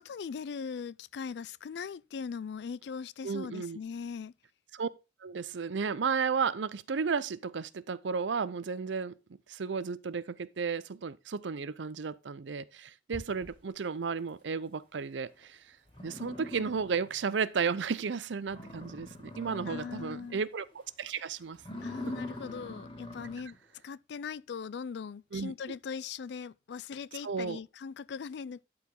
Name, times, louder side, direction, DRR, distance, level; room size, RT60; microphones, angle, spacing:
voice 1, 0.0-4.3 19.6-20.4 21.8-23.6 23.8-28.6, left 6 dB, 65° left, 0.3 m, -40 dB
voice 2, 3.2-3.8 4.7-4.9 5.2-9.2 9.5-15.8 16.0-21.6 22.1-22.2 25.3-25.5 27.2-27.6, right 5 dB, 80° right, 0.5 m, -33 dB
sound 1, 13.1-22.8, left 1 dB, 45° right, 3.7 m, -58 dB
sound 2, 15.4-15.5 15.9-17.3 17.7-17.8 18.2-18.3 18.5-20.4 20.7-21.0 21.5-23.6, left 1 dB, 25° left, 2.2 m, -43 dB
12.0 x 4.8 x 3.7 m
head